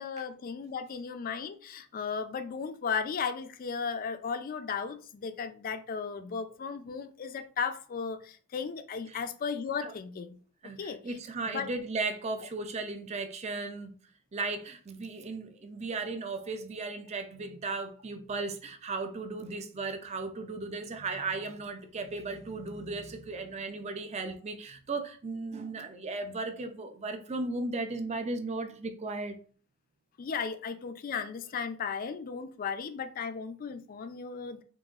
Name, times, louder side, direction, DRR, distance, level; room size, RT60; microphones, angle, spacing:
voice 1, 0.0-10.4 10.8-11.0 11.5-11.7 30.2-34.6, left 6 dB, 40° left, 0.3 m, -35 dB
voice 2, 10.6-13.9 14.3-29.4, right 3 dB, 30° right, 0.4 m, -36 dB
3.9 x 3.6 x 2.4 m
head